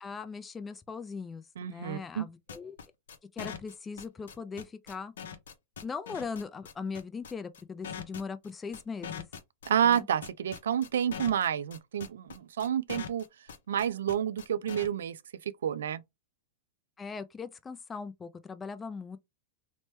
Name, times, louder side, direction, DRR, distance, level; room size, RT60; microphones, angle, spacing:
voice 1, 0.0-2.8 3.3-5.1 5.8-9.2 9.8-10.1 17.0-19.2, left 5 dB, 15° left, 0.3 m, -39 dB
voice 2, 1.6-2.3 9.7-13.2 13.7-15.2 15.6-16.0, right 9 dB, 85° right, 0.3 m, -29 dB
sound 1, 2.5-14.9, left 7 dB, 80° left, 0.5 m, -42 dB
3.0 x 2.1 x 3.0 m
hypercardioid pair, 125°, 0 cm